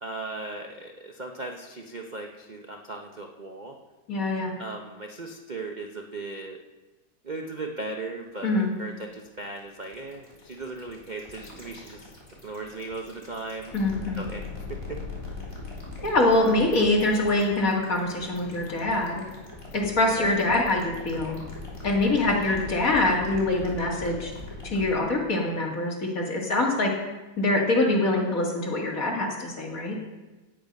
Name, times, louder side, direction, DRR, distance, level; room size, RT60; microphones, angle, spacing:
voice 1, 0.0-3.8 4.6-6.6 7.2-12.1 12.4-13.7 14.2-14.4 14.7-15.0 15.5-15.6 20.1-20.4 22.4-22.6, right 2 dB, 40° right, 2 dB, 0.6 m, -37 dB
voice 2, 4.1-4.5 8.4-8.7 13.7-14.2 16.0-19.3 19.7-21.4 21.8-24.3 24.6-26.9 27.4-30.0, left 2 dB, 40° left, -1 dB, 2.5 m, -24 dB
sound 1, 8.3-25.0, left 3 dB, 15° left, 3.3 m, -41 dB
16.5 x 9.0 x 5.4 m, 1.2 s
omnidirectional pair, 2.2 m